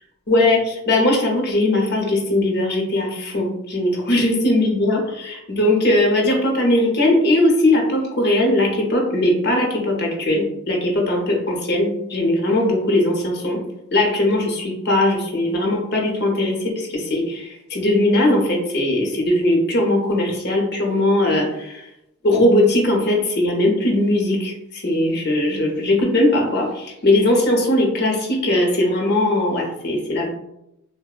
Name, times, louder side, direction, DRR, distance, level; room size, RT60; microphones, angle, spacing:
voice 1, 0.3-13.6 13.9-21.8 22.2-30.3, left 1 dB, 50° left, 0 dB, 0.6 m, -19 dB
3.4 x 2.0 x 2.3 m, 0.84 s
head